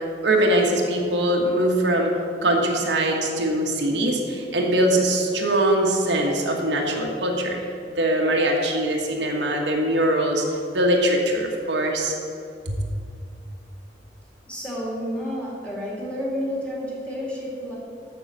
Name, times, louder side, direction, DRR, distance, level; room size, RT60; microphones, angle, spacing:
voice 1, 0.0-2.1 2.4-7.6 7.9-10.4 10.7-12.1 12.7-12.8, right 1 dB, 80° right, 0 dB, 1.2 m, -22 dB
voice 2, 14.5-17.8, equal, 5° left, -5 dB, 2.2 m, -30 dB
6.9 x 6.4 x 7.3 m, 2.5 s
head